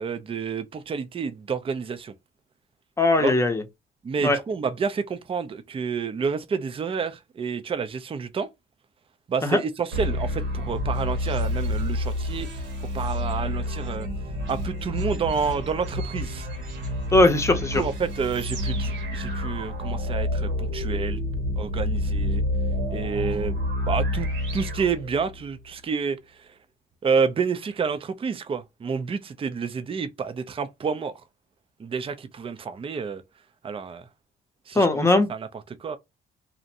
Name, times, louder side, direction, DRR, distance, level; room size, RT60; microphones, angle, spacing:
voice 1, 0.0-2.1 3.2-3.3 4.0-8.5 9.3-12.6 12.9-14.1 14.5-16.5 17.8-21.2 21.6-22.4 22.9-23.6 23.9-26.2 27.0-31.1 31.8-33.2 33.6-34.0 34.7-34.9 35.3-35.5 35.8-36.0, right 5 dB, 30° right, 0.4 m, -29 dB
voice 2, 3.0-3.6 4.2-4.4 9.4-9.6 17.1-17.8 34.7-35.3, left 2 dB, 15° left, 0.6 m, -19 dB
sound 1, 9.9-25.5, left 1 dB, 80° right, 1.1 m, -28 dB
2.5 x 2.1 x 2.7 m
cardioid pair, 90°, 20 cm